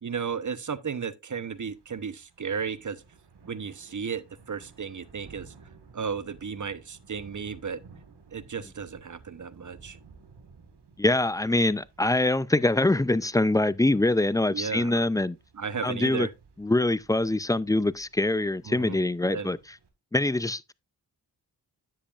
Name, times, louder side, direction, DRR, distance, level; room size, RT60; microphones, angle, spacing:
voice 1, 0.0-3.0 3.5-5.5 5.9-7.8 8.3-10.0 14.5-15.0 15.5-16.3 18.7-19.0 19.3-19.5, right 6 dB, 45° right, 0.9 m, -34 dB
Thunder / Rain, 1.5-19.9, right 4 dB, 75° right, 1.7 m, -56 dB
voice 2, 11.0-15.4 15.8-16.3 16.6-19.6 20.1-20.7, left 2 dB, 10° left, 0.4 m, -24 dB
10.0 x 7.5 x 2.4 m
cardioid pair, 45°, 41 cm